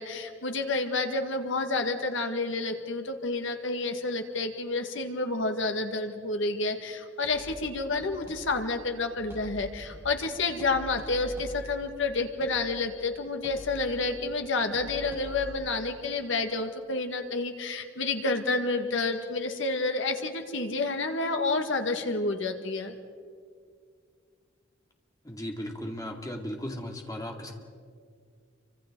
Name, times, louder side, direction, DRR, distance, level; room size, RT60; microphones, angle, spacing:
voice 1, 0.0-22.9, left 3 dB, 70° left, 5 dB, 1.8 m, -29 dB
sound 1, 7.2-15.5, equal, 15° right, 6.6 m, -45 dB
voice 2, 25.3-27.5, equal, 20° left, 1 dB, 2.3 m, -36 dB
29.5 x 25.0 x 3.8 m, 2.1 s
head